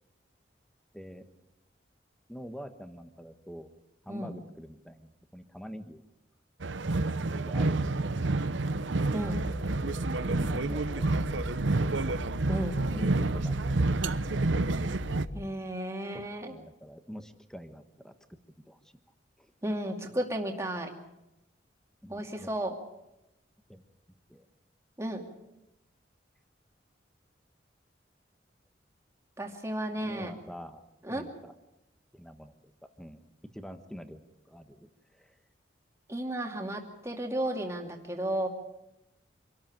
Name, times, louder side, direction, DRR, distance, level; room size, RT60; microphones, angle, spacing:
voice 1, 0.9-1.2 2.3-3.7 4.0-6.0 7.0-7.7 10.3-12.1 12.9-13.8 16.1-18.1 18.7-18.9 19.4-19.5 22.0-22.5 23.7-23.8 24.3-24.5 30.0-30.8 31.1-31.5 32.1-33.2 33.5-34.2 34.5-35.4, equal, 5° left, 8 dB, 1.2 m, -46 dB
sound 1, 6.6-15.2, right 2 dB, 85° right, 0.8 m, -29 dB
voice 2, 9.1-9.5 12.5-12.8 15.3-16.5 19.6-20.9 22.1-22.8 25.0-25.3 29.4-30.3 31.0-31.2 36.1-38.5, right 1 dB, 15° right, 2 dB, 2.4 m, -33 dB
sound 2, 9.2-15.4, left 1 dB, 35° left, 0.7 m, -40 dB
26.0 x 13.0 x 9.0 m, 0.94 s
head